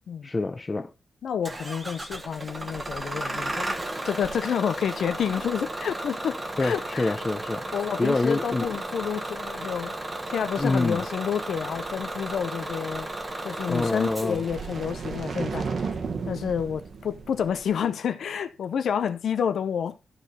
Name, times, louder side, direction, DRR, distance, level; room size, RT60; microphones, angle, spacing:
voice 1, 0.2-0.9 6.6-7.6 8.0-8.7 10.6-11.0 13.7-14.4, left 3 dB, 20° left, 0.8 m, -26 dB
voice 2, 1.2-3.8 4.0-7.1 7.7-9.9 10.3-13.1 13.4-15.7 16.3-20.0, left 7 dB, 70° left, 0.7 m, -29 dB
Bus / Engine starting, 1.4-17.7, right 2 dB, 20° right, 1.2 m, -35 dB
sound 1, 13.8-18.0, right 5 dB, 50° right, 1.2 m, -34 dB
13.0 x 4.9 x 4.3 m
wide cardioid pair, 165°, 0 cm